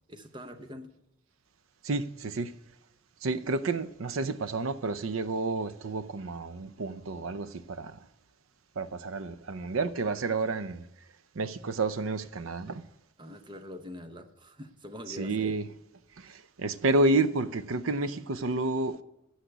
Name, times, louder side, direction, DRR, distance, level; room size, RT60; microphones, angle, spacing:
voice 1, 0.1-0.9 13.2-15.6 16.3-16.4, left 1 dB, 25° right, 0.9 m, -44 dB
voice 2, 1.8-2.5 3.2-8.0 8.8-10.8 11.3-12.8 15.1-15.7 16.2-19.0, right 3 dB, 90° right, 0.6 m, -30 dB
10.0 x 6.5 x 8.1 m
head